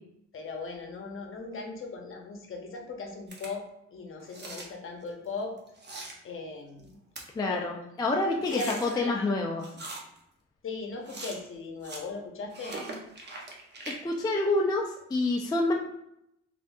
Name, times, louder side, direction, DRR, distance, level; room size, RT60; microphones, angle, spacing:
voice 1, 0.3-5.6 6.2-7.0 7.5-8.1 8.5-9.3 10.6-12.8, left 3 dB, 45° left, 2 dB, 0.8 m, -38 dB
sound 1, 3.3-3.5 4.2-4.7 5.6-6.1 6.8-6.9 7.2-7.3 8.4-8.9 9.6-10.2 11.0-11.5 11.8-12.0 12.5-13.9, right 2 dB, 35° right, 0.8 m, -41 dB
voice 2, 7.4-9.7 13.9-15.7, left 2 dB, 15° left, 0 dB, 0.3 m, -28 dB
3.5 x 2.5 x 2.6 m, 0.79 s
cardioid pair, 90°, 30 cm